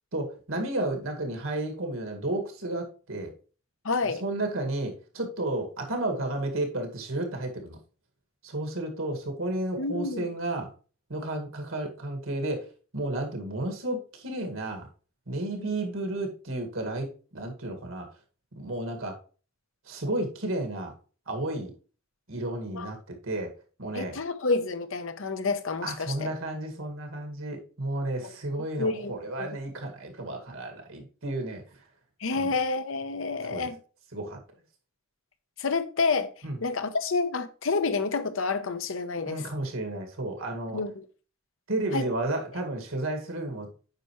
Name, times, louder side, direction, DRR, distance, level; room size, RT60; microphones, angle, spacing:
voice 1, 0.1-3.3 4.2-7.8 8.4-10.7 11.1-12.7 12.9-14.9 15.3-17.1 17.3-18.1 18.6-19.2 19.9-20.9 21.3-21.7 22.3-23.5 23.8-24.2 25.8-31.6 32.3-32.5 33.5-33.7 34.1-34.4 36.4-36.6 39.3-40.8 41.7-43.7, right 1 dB, 80° right, 2.0 m, -32 dB
voice 2, 3.8-4.2 9.8-10.3 15.6-15.7 22.7-22.9 23.9-26.3 28.2-28.3 28.8-29.5 32.2-33.8 35.6-36.3 36.6-39.5 40.7-41.0 41.9-42.1, left 4 dB, 70° left, 0.8 m, -29 dB
9.0 x 5.6 x 3.1 m
head